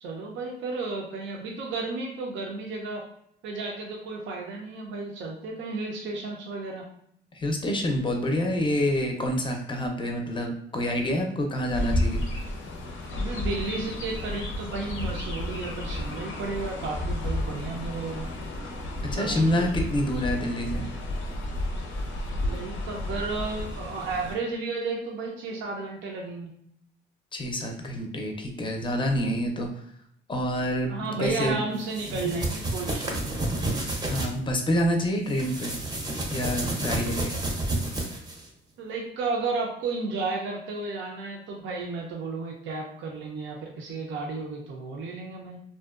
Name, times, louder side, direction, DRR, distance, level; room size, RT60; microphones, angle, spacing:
voice 1, 0.0-3.1 3.4-6.9 13.1-18.3 19.2-19.7 22.4-26.5 30.9-33.6 38.8-45.6, right 3 dB, 70° right, 0 dB, 0.5 m, -33 dB
voice 2, 7.3-12.2 19.1-20.9 27.3-29.8 30.3-31.6 32.1-32.3 34.1-35.7 36.3-37.3, equal, 25° left, 2 dB, 0.5 m, -27 dB
Chirp tweet, 11.7-24.3, left 1 dB, 85° left, 0.6 m, -32 dB
sound 1, 31.8-34.3 35.3-38.5, right 2 dB, 20° right, 0.6 m, -30 dB
2.5 x 2.1 x 2.3 m, 0.70 s
cardioid pair, 90°, 20 cm